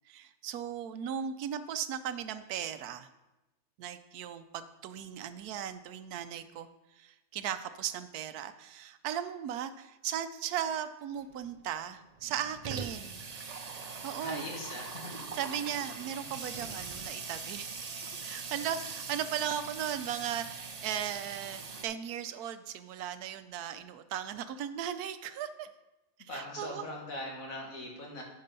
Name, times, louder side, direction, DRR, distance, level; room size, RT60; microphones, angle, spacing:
voice 1, 0.1-3.1 3.8-6.7 6.9-13.2 14.0-14.4 15.3-17.7 18.2-25.7 26.2-26.9, right 9 dB, 85° right, 11 dB, 1.1 m, -37 dB
Water tap faucet / Sink (filling or washing), 11.2-11.3 11.6-11.7 11.9-21.8, right 5 dB, 45° right, 0.5 m, -42 dB
voice 2, 14.2-15.2 26.3-28.2, left 1 dB, 65° left, -1 dB, 2.2 m, -41 dB
9.6 x 5.3 x 5.3 m, 1.0 s
omnidirectional pair, 1.6 m